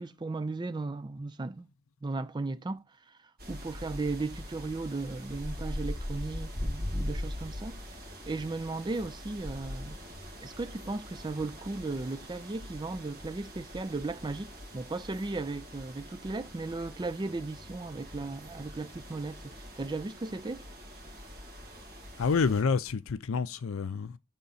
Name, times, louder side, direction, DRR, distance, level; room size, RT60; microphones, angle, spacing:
voice 1, 0.0-1.7 2.0-3.2 3.5-7.8 8.3-10.0 10.4-20.7, right 3 dB, 20° right, 0.4 m, -36 dB
sound 1, 3.4-22.6, left 1 dB, 45° right, 2.3 m, -41 dB
voice 2, 22.2-24.2, left 5 dB, 65° left, 0.5 m, -28 dB
6.9 x 3.7 x 4.0 m
head